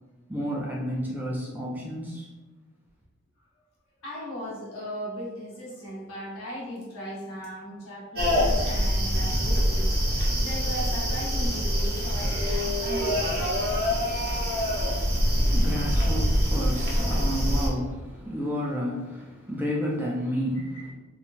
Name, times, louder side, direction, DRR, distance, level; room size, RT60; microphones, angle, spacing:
voice 1, 0.3-2.3 14.8-20.8, equal, 10° right, -4 dB, 0.3 m, -31 dB
voice 2, 4.0-13.2 20.5-20.8, equal, 65° left, -6 dB, 1.1 m, -38 dB
sound 1, 8.1-17.7, equal, 45° right, 0.6 m, -25 dB
3.0 x 2.2 x 2.4 m, 1.2 s
head